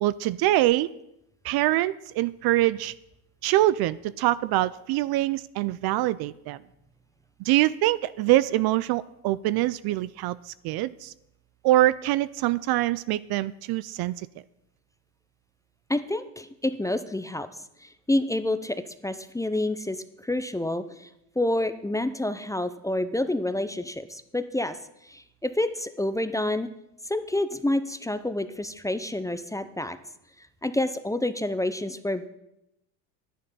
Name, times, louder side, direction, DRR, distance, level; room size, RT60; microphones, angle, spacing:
voice 1, 0.0-0.9 1.4-2.9 3.4-6.6 7.4-11.1 11.6-14.3, right 16 dB, 50° right, 18 dB, 0.5 m, -24 dB
voice 2, 15.9-17.5 17.8-21.1 21.4-24.8 25.0-26.7 27.0-30.0 30.4-32.3, left 1 dB, 5° left, 11 dB, 0.6 m, -28 dB
10.5 x 10.0 x 5.5 m, 0.85 s
supercardioid pair, 90°, 49 cm